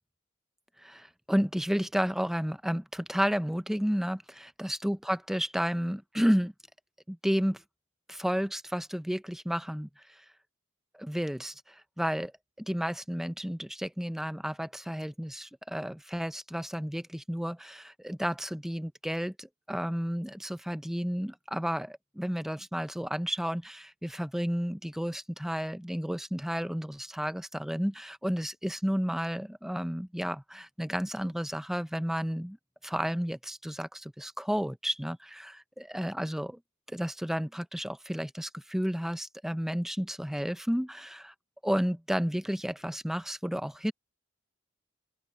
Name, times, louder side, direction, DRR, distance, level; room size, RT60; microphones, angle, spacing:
voice 1, 0.8-6.5 7.1-7.6 8.1-10.2 10.9-12.3 12.6-32.6 32.8-36.6 36.9-41.3 41.6-43.9, equal, ahead, 0.5 m, -32 dB
open air
head